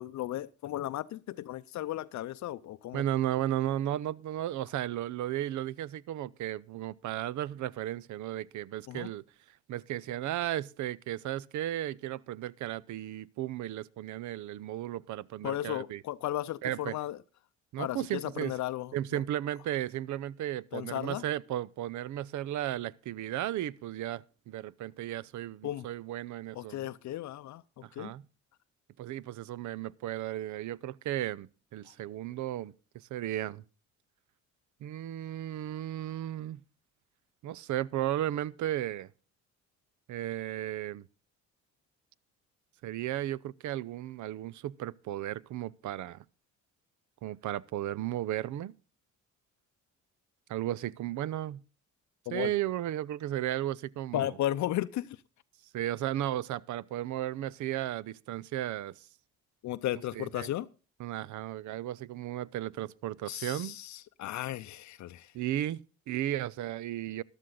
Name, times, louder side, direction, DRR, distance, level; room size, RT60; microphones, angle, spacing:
voice 1, 0.0-3.0 8.9-9.1 15.4-17.2 17.8-18.9 20.7-21.2 25.6-25.9 26.6-28.1 52.3-52.5 54.1-55.1 59.6-60.7 63.3-65.3, left 14 dB, 70° left, 0.6 m, -35 dB
voice 2, 2.9-9.2 9.7-16.0 16.6-17.0 17.7-18.6 18.9-26.9 27.8-28.2 29.0-33.6 34.8-36.6 37.4-39.1 40.1-41.1 42.8-46.2 47.2-48.7 50.5-51.6 52.3-54.4 55.7-59.1 60.1-60.5 61.0-63.8 65.3-67.2, right 13 dB, 75° right, 0.6 m, -35 dB
13.5 x 11.5 x 3.8 m
cardioid pair, 90°, 30 cm